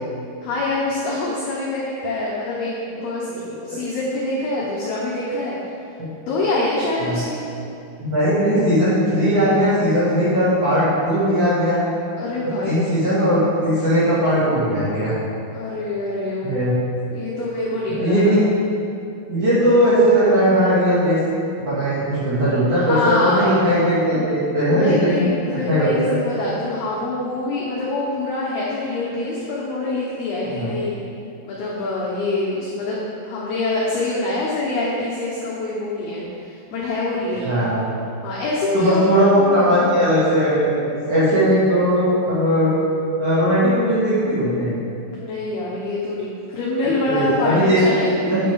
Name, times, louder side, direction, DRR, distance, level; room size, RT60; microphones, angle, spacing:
voice 1, 0.4-2.7 3.0-3.3 3.6-5.6 6.2-7.4 12.2-12.8 15.5-16.6 17.1-18.4 22.7-23.5 24.1-24.3 24.7-31.0 31.5-36.2 36.7-37.6 38.2-39.9 45.1-48.3, left 2 dB, 80° left, -6 dB, 2.3 m, -25 dB
voice 2, 8.0-11.8 12.4-15.1 16.4-16.7 18.0-18.4 19.3-21.2 21.6-26.2 30.5-30.7 37.4-37.9 38.7-42.7 43.2-44.8 46.8-47.8 48.3-48.4, equal, 50° right, -12 dB, 2.6 m, -18 dB
Mallet percussion, 23.4-25.9, right 6 dB, 85° right, 3.3 m, -35 dB
9.4 x 6.8 x 3.6 m, 2.6 s
omnidirectional pair, 5.9 m